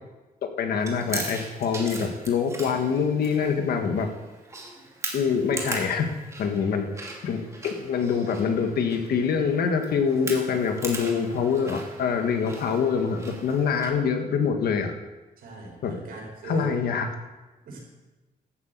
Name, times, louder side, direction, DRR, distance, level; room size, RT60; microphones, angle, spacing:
voice 1, 0.6-4.1 5.1-6.1 6.4-6.9 7.2-7.4 7.6-14.9 15.8-15.9 16.4-17.1, left 6 dB, 90° left, 5 dB, 1.6 m, -25 dB
Chewing mastication, 0.8-13.9, right 2 dB, 20° right, 2.3 m, -40 dB
voice 2, 15.4-16.7 17.7-17.8, right 4 dB, 70° right, 0 dB, 4.8 m, -40 dB
12.5 x 8.0 x 8.3 m, 1.2 s
wide cardioid pair, 170°, 16 cm